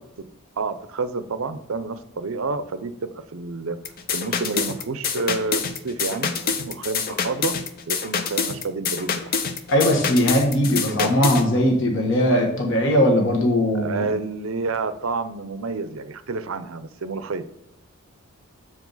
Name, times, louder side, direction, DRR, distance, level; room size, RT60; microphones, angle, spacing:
voice 1, 0.6-3.8 4.1-7.6 7.9-9.4 10.7-11.1 13.7-17.4, right 4 dB, 65° right, 12 dB, 0.6 m, -29 dB
sound 1, 3.8-11.5, left 6 dB, 40° left, 0.6 m, -26 dB
voice 2, 9.7-14.1, equal, 60° left, 0 dB, 1.4 m, -19 dB
7.5 x 4.9 x 3.9 m, 0.84 s
head